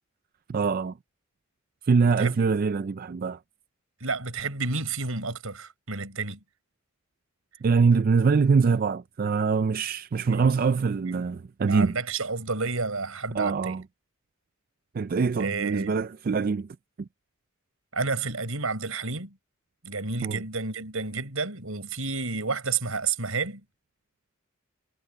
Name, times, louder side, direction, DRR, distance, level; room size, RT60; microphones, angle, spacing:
voice 1, 0.5-1.0 1.9-3.4 7.6-12.0 13.3-13.8 14.9-16.7 17.0-17.1 20.2-20.4, right 5 dB, 45° right, 0.3 m, -24 dB
voice 2, 4.0-6.4 10.3-10.5 11.1-11.2 11.6-13.7 15.4-16.0 17.9-19.4 19.8-23.6, right 4 dB, 80° right, 4.9 m, -30 dB
head